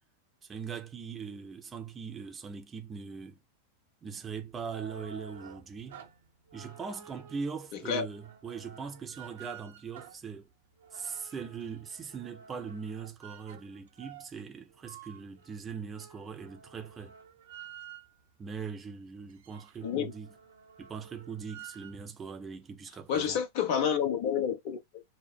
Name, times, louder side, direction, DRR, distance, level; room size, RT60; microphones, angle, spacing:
voice 1, 0.5-3.4 4.0-6.0 6.5-10.5 10.9-17.2 18.4-20.3 20.8-23.4, right 6 dB, 20° right, 0.8 m, -41 dB
sound 1, 4.4-18.3 18.8-18.9 19.1-22.0, right 8 dB, 65° right, 0.8 m, -51 dB
voice 2, 7.7-8.1 19.8-20.1 23.1-25.0, left 8 dB, 45° left, 0.9 m, -29 dB
5.0 x 2.0 x 3.6 m
figure-of-eight pair, 90°, 0 cm